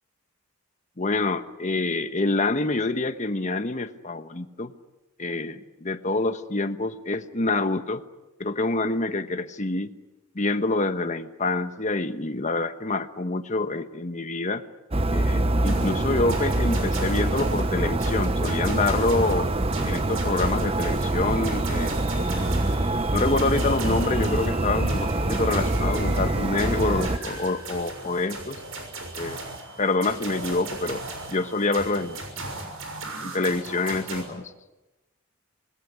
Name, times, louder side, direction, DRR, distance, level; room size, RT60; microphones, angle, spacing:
voice 1, 1.0-4.7 5.2-8.0 8.4-9.9 10.3-14.6 15.1-19.5 19.8-22.0 23.1-28.6 29.1-29.4 29.8-31.0 31.3-32.4 33.2-34.5, left 3 dB, 35° left, 9 dB, 1.2 m, -26 dB
sound 1, 14.9-27.2, right 2 dB, 30° right, 0.8 m, -25 dB
sound 2, 15.6-34.2, right 2 dB, 85° right, 6.4 m, -37 dB
sound 3, 21.1-32.5, equal, 5° right, 6.5 m, -47 dB
26.0 x 20.0 x 9.8 m, 1.1 s
head